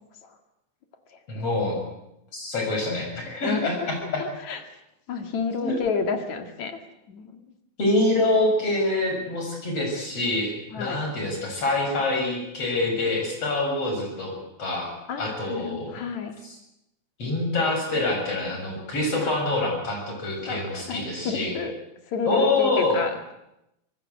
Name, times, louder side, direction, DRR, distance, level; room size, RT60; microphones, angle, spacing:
voice 1, 1.3-1.8 2.3-4.2 5.6-5.7 7.8-14.3 14.6-14.9 15.2-15.9 17.2-21.5 22.2-23.0, left 2 dB, 50° left, 2 dB, 7.8 m, -25 dB
voice 2, 4.2-4.6 5.1-6.8 7.1-7.4 10.7-11.1 15.1-16.3 19.2-19.3 20.5-21.7 22.1-23.1, left 5 dB, 70° left, 6 dB, 3.3 m, -30 dB
25.5 x 19.5 x 8.3 m, 0.86 s
omnidirectional pair, 3.4 m